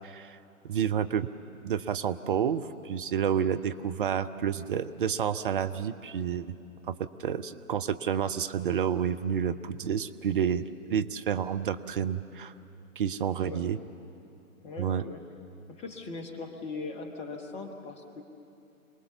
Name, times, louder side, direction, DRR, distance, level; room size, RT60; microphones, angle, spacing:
voice 1, 0.0-0.4 0.6-1.3 1.6-6.5 6.9-7.0 7.2-12.5 13.0-13.8 14.8-15.0, right 8 dB, 40° right, 11 dB, 0.7 m, -29 dB
voice 2, 14.6-15.2 15.7-18.2, left 3 dB, 15° left, 5 dB, 1.2 m, -40 dB
26.5 x 19.5 x 7.0 m, 2.7 s
figure-of-eight pair, 120°, 43 cm